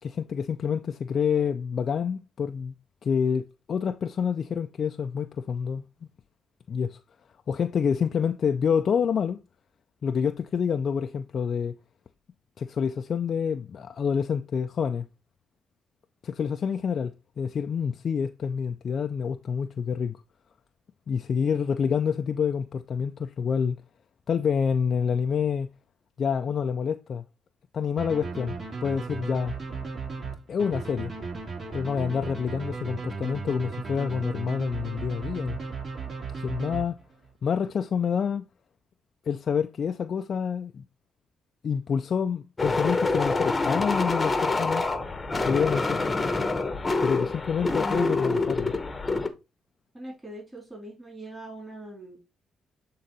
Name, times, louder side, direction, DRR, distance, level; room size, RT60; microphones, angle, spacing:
voice 1, 0.0-2.7 3.0-5.9 6.7-7.0 7.5-9.4 10.0-11.8 12.6-15.1 16.2-20.2 21.1-23.8 24.3-25.7 26.2-27.2 27.7-29.6 30.5-31.1 31.7-35.6 36.3-37.0 37.4-38.5 39.3-40.8 41.6-44.8 45.4-46.0 47.0-48.7, left 6 dB, 50° left, 0.4 m, -27 dB
sound 1, 28.0-37.3, right 4 dB, 45° right, 4.5 m, -36 dB
sound 2, 42.6-49.3, left 3 dB, 25° left, 1.0 m, -26 dB
voice 2, 49.9-52.2, right 1 dB, 15° right, 3.6 m, -42 dB
8.0 x 3.7 x 4.0 m
cardioid pair, 90°, 0 cm